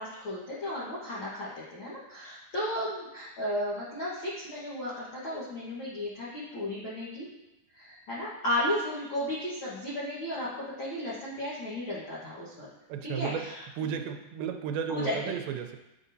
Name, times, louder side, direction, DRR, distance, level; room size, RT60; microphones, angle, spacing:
voice 1, 0.0-7.3 7.7-12.7 13.0-13.6 14.9-15.4, left 1 dB, 80° left, -8 dB, 1.1 m, -34 dB
voice 2, 12.9-15.8, right 8 dB, 85° right, 4 dB, 2.4 m, -34 dB
9.7 x 4.0 x 2.6 m, 0.96 s
omnidirectional pair, 4.2 m